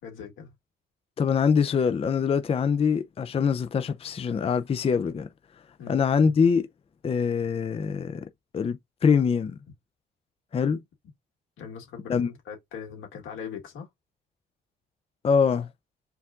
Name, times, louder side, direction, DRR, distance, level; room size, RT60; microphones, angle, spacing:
voice 1, 0.0-0.5 5.8-6.0 11.6-13.9, left 7 dB, 85° left, 2.2 m, -40 dB
voice 2, 1.2-5.3 5.9-6.7 7.0-8.2 8.5-9.6 10.5-10.8 12.1-12.3 15.2-15.7, left 6 dB, 30° left, 0.5 m, -24 dB
4.6 x 2.5 x 3.6 m
cardioid pair, 90°, 20 cm